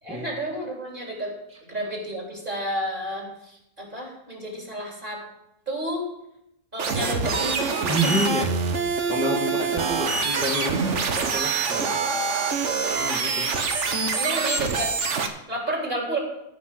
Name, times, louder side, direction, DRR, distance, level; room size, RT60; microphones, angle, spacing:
voice 1, 0.0-1.3 1.6-5.2 5.7-6.1 6.7-8.2 9.4-9.5 13.2-13.5 14.1-14.9 15.5-16.2, right 1 dB, 35° right, -1 dB, 3.8 m, -31 dB
sound 1, 6.8-15.3, right 4 dB, 55° right, 1.3 m, -25 dB
voice 2, 7.8-8.5 9.0-12.0 13.0-13.4, right 1 dB, 5° right, -3 dB, 1.6 m, -28 dB
14.5 x 5.8 x 7.7 m, 0.82 s
omnidirectional pair, 1.6 m